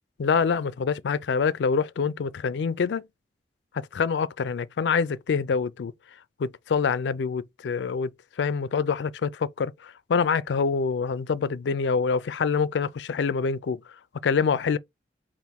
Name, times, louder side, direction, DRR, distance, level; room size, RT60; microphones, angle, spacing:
voice 1, 0.2-3.1 3.9-5.9 6.4-8.1 8.4-13.8 14.2-14.8, left 5 dB, 80° left, 0.4 m, -25 dB
4.0 x 2.5 x 3.6 m
head